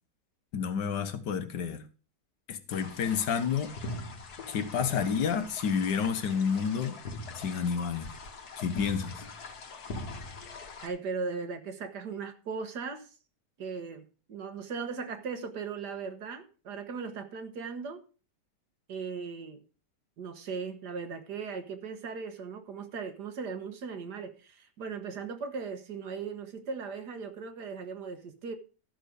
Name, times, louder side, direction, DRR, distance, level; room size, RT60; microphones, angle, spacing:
voice 1, 0.5-1.8 2.5-3.8 4.5-6.9 7.3-8.1 8.6-9.3, left 7 dB, 80° left, 1.7 m, -30 dB
sound 1, 2.7-10.9, left 2 dB, 60° left, 2.0 m, -42 dB
voice 2, 10.8-13.1 13.6-18.0 18.9-19.6 20.2-28.6, right 5 dB, 70° right, 1.9 m, -38 dB
13.0 x 6.5 x 5.1 m
omnidirectional pair, 1.9 m